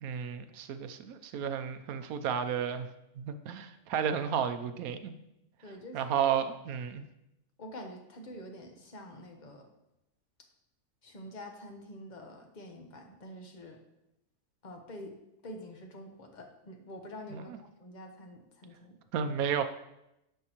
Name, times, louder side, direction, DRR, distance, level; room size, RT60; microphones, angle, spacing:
voice 1, 0.0-2.9 3.2-5.1 5.9-7.0 17.3-17.4 19.1-19.6, right 8 dB, 80° right, 10 dB, 1.1 m, -32 dB
voice 2, 5.6-6.0 7.6-9.7 11.0-13.8 14.6-15.2 15.4-19.0, left 1 dB, 35° left, 3 dB, 1.0 m, -46 dB
10.5 x 6.2 x 3.0 m, 0.87 s
omnidirectional pair, 1.5 m